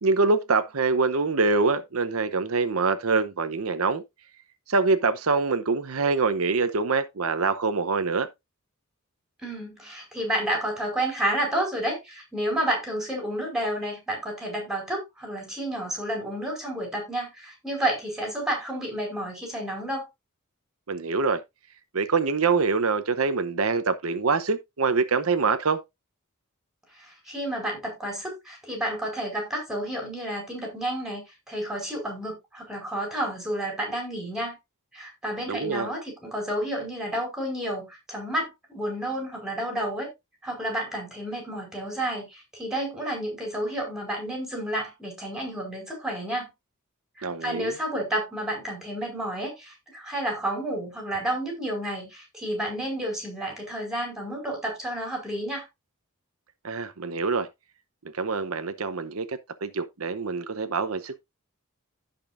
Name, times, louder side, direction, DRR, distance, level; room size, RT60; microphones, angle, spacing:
voice 1, 0.0-4.0 4.7-8.3 20.9-21.4 21.9-25.8 35.5-35.9 47.2-47.7 56.6-57.5 58.1-61.2, right 4 dB, 80° right, 0.8 m, -25 dB
voice 2, 9.4-20.1 27.0-31.2 31.5-34.6 34.9-40.1 40.4-46.5 47.2-55.6, right 1 dB, 5° right, 5.2 m, -30 dB
16.0 x 5.3 x 2.5 m
head